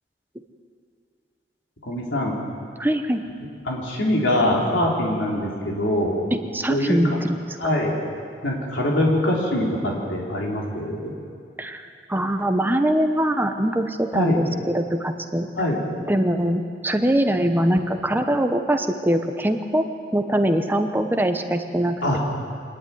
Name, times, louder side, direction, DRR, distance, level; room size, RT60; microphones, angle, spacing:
voice 1, 1.8-2.4 3.7-6.2 6.7-7.2 7.6-7.9 8.4-11.1 14.1-14.4 15.6-15.8 22.0-22.2, left 1 dB, 90° left, -3 dB, 3.9 m, -23 dB
voice 2, 2.8-3.2 6.3-7.6 11.6-15.7 16.1-19.8 20.1-22.2, right 1 dB, 10° right, 6 dB, 1.0 m, -23 dB
26.5 x 11.0 x 9.5 m, 2.3 s
head